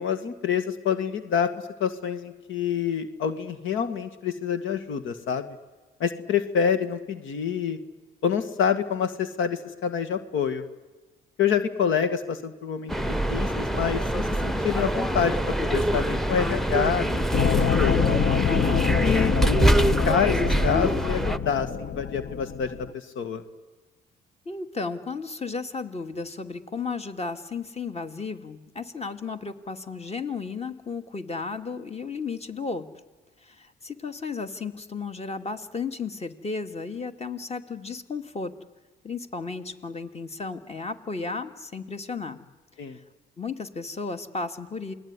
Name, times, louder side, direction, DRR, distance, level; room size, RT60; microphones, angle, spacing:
voice 1, 0.0-1.5 1.8-5.4 6.0-7.8 8.2-10.6 11.4-18.0 19.0-19.8 20.1-23.4 42.8-43.0, left 7 dB, 80° left, 11 dB, 2.0 m, -27 dB
sound 1, 12.9-21.4, right 1 dB, ahead, 1.0 m, -24 dB
sound 2, 17.3-22.9, left 7 dB, 55° left, 0.9 m, -26 dB
voice 2, 24.5-32.9 33.4-38.5 39.0-42.4 42.8-43.0 43.4-44.9, left 4 dB, 30° left, 8 dB, 2.4 m, -34 dB
28.0 x 20.0 x 9.9 m, 1.2 s
cardioid pair, 90°, 20 cm